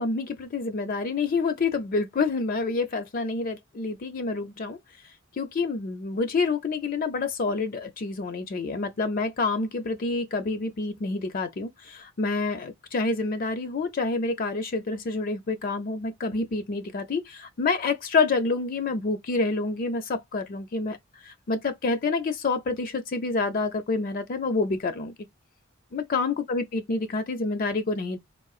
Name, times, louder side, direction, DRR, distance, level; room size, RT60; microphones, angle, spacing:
voice 1, 0.0-4.8 5.4-21.0 21.3-25.1 25.9-28.2, left 3 dB, 40° left, 0.5 m, -28 dB
3.7 x 2.3 x 2.3 m
head